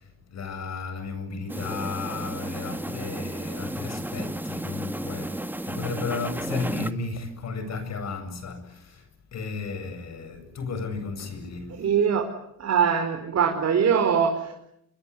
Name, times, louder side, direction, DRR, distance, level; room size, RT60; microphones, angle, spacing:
voice 1, 0.0-11.9, left 4 dB, 60° left, 7.9 m, -34 dB
sound 1, 1.5-6.9, right 1 dB, 5° right, 1.7 m, -33 dB
voice 2, 11.7-12.3 12.6-14.5, right 7 dB, 60° right, 5.0 m, -22 dB
27.0 x 22.5 x 9.9 m
cardioid pair, 90°, 30 cm